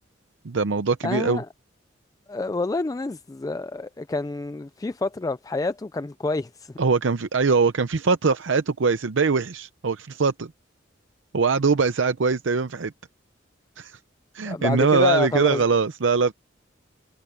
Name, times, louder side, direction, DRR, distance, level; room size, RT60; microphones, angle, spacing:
voice 1, 0.4-1.4 6.8-10.5 11.3-12.9 13.8-14.0 14.3-16.3, right 4 dB, 75° right, 0.6 m, -22 dB
voice 2, 1.0-1.5 2.3-6.7 14.4-15.6, left 3 dB, 20° left, 0.3 m, -28 dB
head